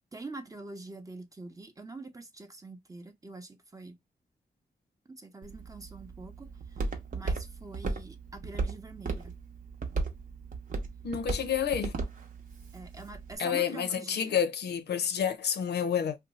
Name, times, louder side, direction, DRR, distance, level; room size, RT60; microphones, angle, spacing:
voice 1, 0.1-4.0 5.1-9.4 12.7-14.4, right 3 dB, 20° right, 0.6 m, -45 dB
Walk footsteps, 5.4-13.4, right 3 dB, 50° right, 0.8 m, -36 dB
voice 2, 11.0-11.9 13.4-16.2, left 8 dB, 80° left, 0.5 m, -29 dB
2.6 x 2.2 x 3.9 m
wide cardioid pair, 105°, 17 cm